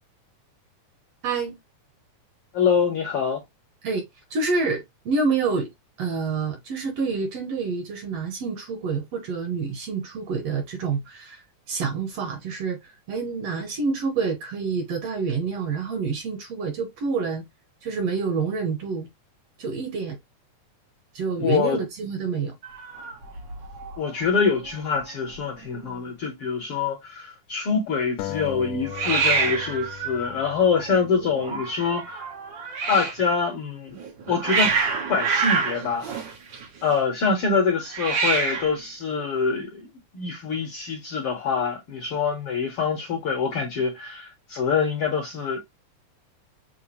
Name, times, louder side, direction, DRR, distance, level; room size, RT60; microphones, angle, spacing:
voice 1, 1.2-1.6 3.8-5.7 6.0-11.4 11.7-17.4 17.8-19.1 19.6-20.2 21.1-22.5, right 4 dB, 65° right, 1.7 m, -27 dB
voice 2, 2.5-3.4 21.4-21.8 24.0-32.2 32.9-34.0 34.3-34.7 35.1-36.1 36.8-39.9 40.1-45.6, left 5 dB, 65° left, 1.5 m, -25 dB
Hiss, 22.6-24.0 24.2-24.7 25.0-25.1 25.2-25.9 28.9-33.2 34.0-36.9 37.9-38.8, right 5 dB, 85° right, 1.0 m, -27 dB
sound 1, 28.2-31.4, left 14 dB, 80° left, 1.8 m, -37 dB
6.7 x 2.5 x 2.9 m
omnidirectional pair, 3.6 m